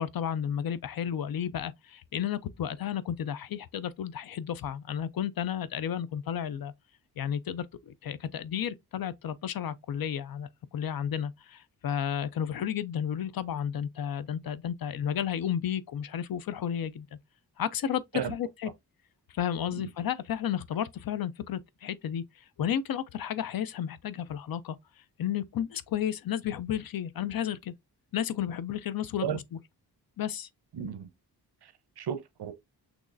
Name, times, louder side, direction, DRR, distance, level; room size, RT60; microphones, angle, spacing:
voice 1, 0.0-6.7 7.2-10.5 10.7-17.2 17.6-18.7 19.3-24.8 25.2-27.7 28.1-29.4 30.2-30.5, left 9 dB, 65° left, 0.5 m, -32 dB
voice 2, 30.7-31.1 31.6-32.5, right 8 dB, 80° right, 0.8 m, -34 dB
6.1 x 3.1 x 2.5 m
wide cardioid pair, 170°, 39 cm